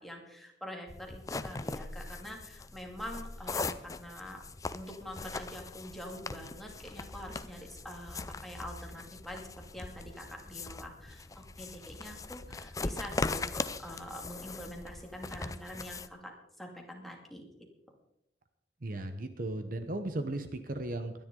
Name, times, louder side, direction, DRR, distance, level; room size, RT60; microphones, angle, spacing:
voice 1, 0.0-4.4 4.7-13.5 13.8-17.5, equal, ahead, 0 dB, 2.4 m, -45 dB
sound 1, 0.9-16.1, left 3 dB, 20° left, 0.5 m, -40 dB
voice 2, 18.8-21.1, right 2 dB, 50° right, 8 dB, 1.0 m, -36 dB
22.5 x 10.5 x 3.9 m, 0.82 s
head